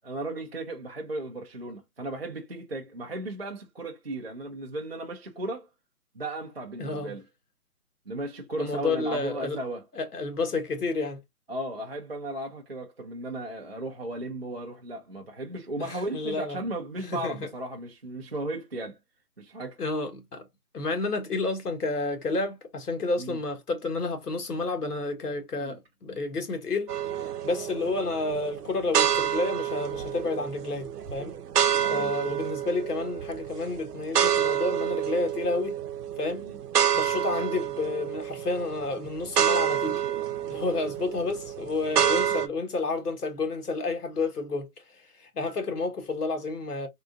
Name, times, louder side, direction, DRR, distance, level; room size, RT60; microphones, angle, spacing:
voice 1, 0.0-5.7 6.1-7.2 8.1-9.8 11.5-19.0 19.4-19.8 23.2-23.4 25.6-25.8 31.8-32.1 36.4-36.6, right 1 dB, 45° right, 0.5 m, -35 dB
voice 2, 6.8-7.1 8.6-9.6 9.9-11.2 15.8-16.6 17.1-17.4 19.8-20.4 20.7-26.9 27.4-31.3 31.9-35.8 36.2-36.5 36.9-40.0 40.5-44.7 45.2-46.9, left 3 dB, 80° left, 1.3 m, -30 dB
sound 1, 26.9-42.5, right 9 dB, 85° right, 0.7 m, -28 dB
3.6 x 2.3 x 2.4 m
hypercardioid pair, 175°, 45 cm